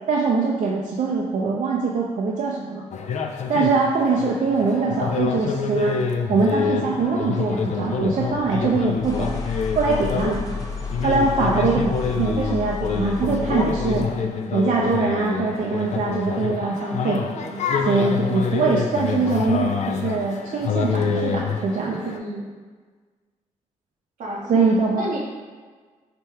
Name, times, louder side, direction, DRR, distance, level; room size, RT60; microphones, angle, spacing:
voice 1, 0.1-2.8 3.5-6.0 6.3-9.3 9.8-10.6 11.0-11.8 12.2-14.1 14.5-17.2 17.9-22.0 24.5-25.2, right 4 dB, 60° right, -3 dB, 0.5 m, -22 dB
sound 1, 2.9-22.2, left 5 dB, 55° left, 0.4 m, -27 dB
sound 2, 6.4-14.3, left 4 dB, 25° left, 0.7 m, -33 dB
voice 2, 13.0-14.0 16.6-17.9 21.9-22.5 24.2-24.6 24.9-25.2, right 1 dB, 80° right, -3 dB, 0.8 m, -33 dB
3.4 x 2.2 x 4.3 m, 1.4 s
cardioid pair, 65°, 14 cm